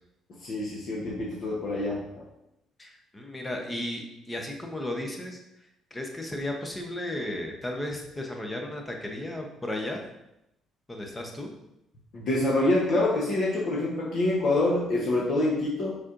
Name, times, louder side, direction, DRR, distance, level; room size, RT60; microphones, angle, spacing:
voice 1, 0.4-2.2 12.1-16.0, left 2 dB, 55° left, -3 dB, 0.9 m, -26 dB
voice 2, 2.8-10.0 10.9-11.5, left 1 dB, 15° left, 2 dB, 0.8 m, -35 dB
4.9 x 4.2 x 2.5 m, 0.85 s
cardioid pair, 110°, 0 cm